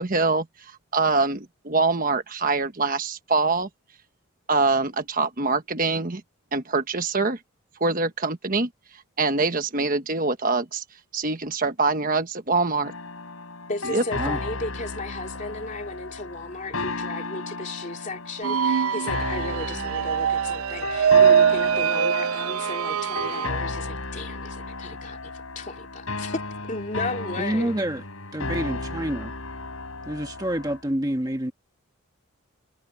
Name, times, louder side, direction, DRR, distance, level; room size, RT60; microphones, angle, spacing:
voice 1, 0.0-3.7 4.5-6.2 6.5-7.4 7.8-8.7 9.2-10.8 11.1-12.9 13.8-14.0, right 3 dB, 40° right, 1.3 m, -24 dB
sound 1, 12.8-30.8, left 3 dB, 70° left, 4.9 m, -34 dB
voice 2, 13.7-26.4 26.7-27.7, left 2 dB, 35° left, 3.2 m, -35 dB
sound 2, 18.4-23.5, right 7 dB, 75° right, 0.5 m, -22 dB
voice 3, 27.4-28.0 28.3-29.3 30.0-31.5, right 1 dB, 15° right, 1.5 m, -28 dB
head